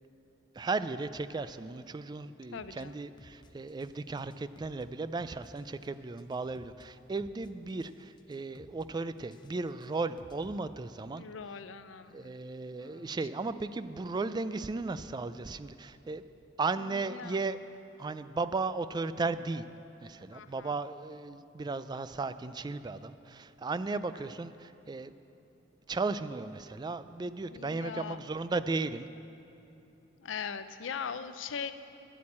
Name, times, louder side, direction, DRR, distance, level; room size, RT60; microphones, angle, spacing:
voice 1, 0.6-11.2 12.1-16.2 16.6-17.6 18.0-19.7 20.0-25.1 25.9-29.1, right 3 dB, 20° right, 13 dB, 0.3 m, -35 dB
voice 2, 2.5-2.9 11.1-12.4 12.8-13.1 16.8-17.4 20.3-20.7 23.9-24.3 27.5-28.2 30.2-31.7, left 6 dB, 90° left, 12 dB, 0.6 m, -41 dB
sound 1, 2.6-2.8 3.2-3.9 4.2-4.8 5.2-5.9 6.2-6.8 7.2-7.9 8.2-8.8 9.2-10.6, left 1 dB, 25° left, 0.6 m, -56 dB
11.5 x 8.6 x 8.5 m, 2.9 s
head